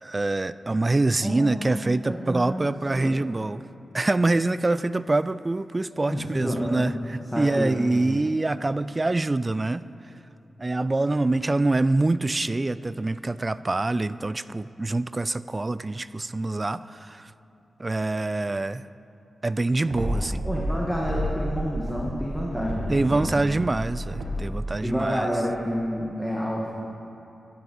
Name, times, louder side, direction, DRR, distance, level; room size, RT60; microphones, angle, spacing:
voice 1, 0.0-3.6 3.9-9.9 10.6-17.3 17.8-18.8 19.4-20.5 22.9-25.3, right 2 dB, 35° right, 16 dB, 0.3 m, -25 dB
voice 2, 1.2-3.3 6.1-6.8 7.3-8.0 20.4-23.5 24.8-26.7, equal, ahead, -3 dB, 1.7 m, -29 dB
sound 1, 19.9-21.5 21.8-24.6, equal, 70° right, 1.9 m, -31 dB
11.5 x 9.6 x 4.6 m, 3.0 s
cardioid pair, 45°, 0 cm